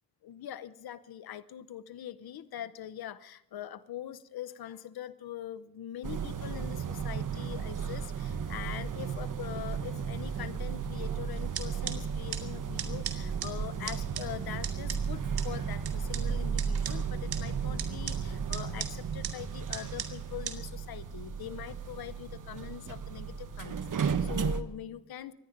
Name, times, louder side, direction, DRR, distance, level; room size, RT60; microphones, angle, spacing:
voice 1, 0.2-25.3, left 11 dB, 75° left, 15 dB, 0.8 m, -43 dB
sound 1, 6.0-24.6, right 6 dB, 55° right, 1.3 m, -34 dB
sound 2, 11.3-20.5, right 8 dB, 85° right, 2.0 m, -42 dB
24.5 x 10.0 x 5.2 m, 0.83 s
cardioid pair, 80°, 37 cm